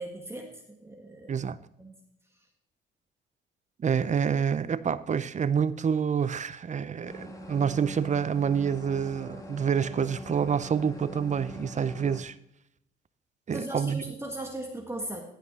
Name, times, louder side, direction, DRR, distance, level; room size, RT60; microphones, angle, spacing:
voice 1, 0.0-1.5 1.8-1.9 13.5-15.2, right 1 dB, 15° right, 1.7 m, -38 dB
voice 2, 3.8-12.3 13.5-14.0, right 7 dB, 40° right, 0.6 m, -27 dB
sound 1, 7.1-12.2, left 1 dB, 15° left, 2.0 m, -43 dB
15.0 x 5.8 x 4.1 m
cardioid pair, 90°, 20 cm